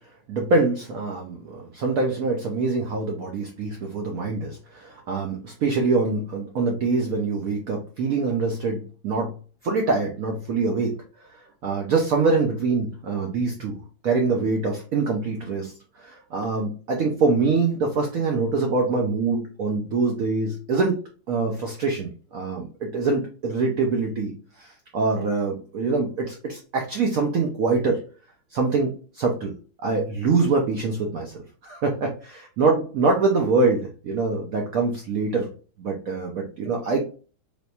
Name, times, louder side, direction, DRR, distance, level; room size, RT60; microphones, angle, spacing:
voice 1, 0.3-9.3 9.6-10.9 11.2-13.8 14.0-21.0 21.3-24.3 24.6-28.0 28.5-29.5 29.8-31.3 31.6-35.5 35.8-37.0, right 4 dB, 85° right, 1 dB, 0.7 m, -24 dB
3.4 x 3.0 x 2.7 m, 0.38 s
omnidirectional pair, 2.2 m